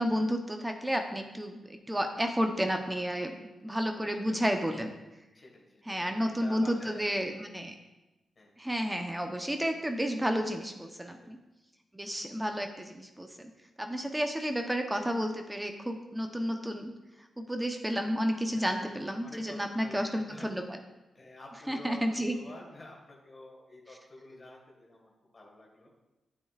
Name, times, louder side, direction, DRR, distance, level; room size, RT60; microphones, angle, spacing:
voice 1, 0.0-3.3 3.6-4.9 5.9-7.7 8.6-11.4 11.9-13.5 13.8-16.9 17.4-20.6 21.7-22.4, equal, 10° right, 4 dB, 0.9 m, -31 dB
voice 2, 3.9-4.4 5.3-7.4 8.4-8.5 11.1-11.3 18.5-18.6 19.2-20.5 21.1-25.9, left 2 dB, 45° left, -2 dB, 1.9 m, -50 dB
8.6 x 7.2 x 2.5 m, 1.0 s
supercardioid pair, 45°, 0 cm